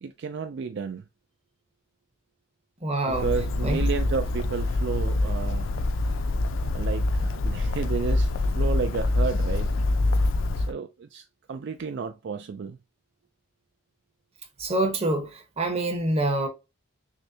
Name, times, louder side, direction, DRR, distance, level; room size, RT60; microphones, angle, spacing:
voice 1, 0.0-1.0 3.1-5.7 6.6-9.7 10.5-12.8, right 5 dB, 60° right, 0.3 m, -32 dB
voice 2, 2.8-3.3 3.6-3.9 14.6-16.5, right 2 dB, 30° right, 1.0 m, -26 dB
Bird, 3.1-10.7, left 2 dB, 70° left, 0.4 m, -25 dB
6.2 x 2.1 x 2.7 m
head